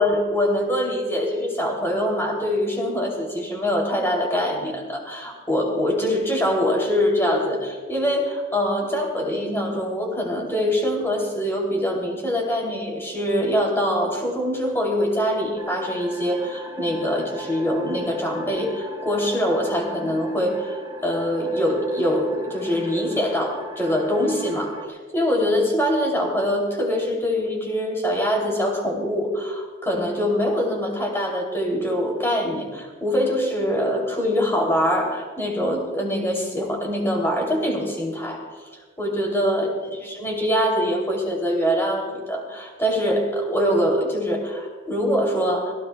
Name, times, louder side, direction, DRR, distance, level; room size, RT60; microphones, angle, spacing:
voice 1, 0.0-20.8 21.0-38.4 39.0-39.7 40.0-45.7, equal, 15° left, 0 dB, 2.9 m, -24 dB
sound 1, 15.5-24.9, left 1 dB, 25° right, 1.6 m, -38 dB
26.0 x 16.0 x 2.3 m, 1.4 s
head